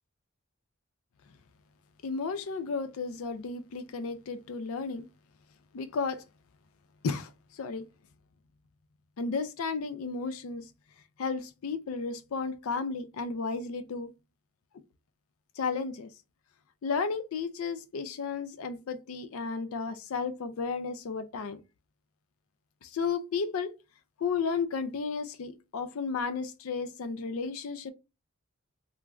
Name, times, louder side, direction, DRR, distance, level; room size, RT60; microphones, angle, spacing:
voice 1, 2.0-5.1 5.7-6.2 7.0-7.8 9.2-10.7 11.2-14.1 15.6-16.1 16.8-21.6 22.8-23.7 24.2-27.9, left 5 dB, 80° left, 0.4 m, -33 dB
3.1 x 2.3 x 2.3 m
head